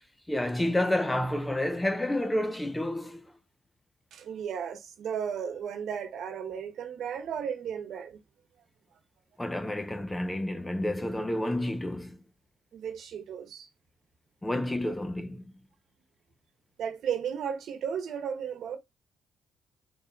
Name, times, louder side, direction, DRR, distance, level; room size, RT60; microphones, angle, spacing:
voice 1, 0.3-3.3 9.4-12.2 14.4-15.4, left 1 dB, 10° left, 0.7 m, -29 dB
voice 2, 4.1-8.2 12.7-13.7 16.8-18.8, right 8 dB, 70° right, 1.1 m, -34 dB
3.9 x 3.4 x 4.0 m
cardioid pair, 90°, 0 cm